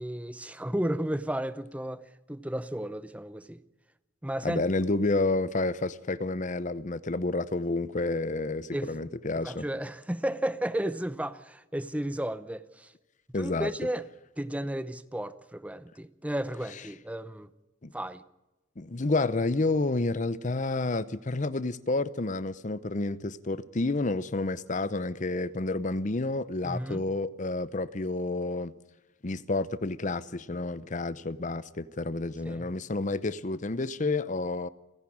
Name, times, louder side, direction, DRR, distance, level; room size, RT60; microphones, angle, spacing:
voice 1, 0.0-3.6 4.2-4.6 8.7-9.1 9.4-12.9 13.3-14.0 14.4-17.5 17.9-18.2 26.6-27.1 32.4-32.7, right 1 dB, 5° right, 0.7 m, -33 dB
voice 2, 4.4-9.6 13.3-13.7 17.8-17.9 18.8-28.7 29.2-34.7, left 2 dB, 40° left, 0.7 m, -30 dB
29.5 x 11.0 x 8.7 m
head